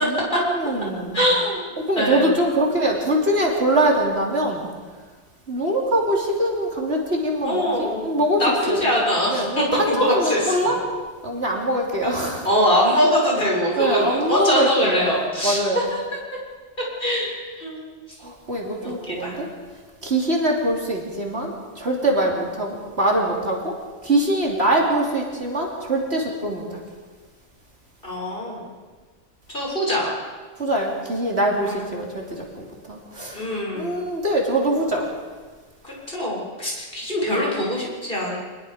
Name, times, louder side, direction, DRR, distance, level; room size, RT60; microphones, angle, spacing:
voice 1, 0.0-1.2 1.8-4.7 5.5-8.8 9.3-10.8 11.2-12.5 13.8-15.1 15.4-15.9 18.2-19.5 20.0-23.8 24.0-26.8 30.6-33.4 33.7-35.1, right 1 dB, 50° right, -1 dB, 3.5 m, -23 dB
voice 2, 1.1-1.6 2.0-2.4 7.4-10.7 12.0-12.1 12.4-15.8 16.8-17.3 17.6-17.8 18.8-19.4 28.0-28.6 29.5-30.1 31.6-31.9 33.3-34.0 35.8-38.4, equal, 40° left, -4 dB, 6.9 m, -23 dB
26.5 x 20.5 x 5.1 m, 1.4 s
omnidirectional pair, 1.3 m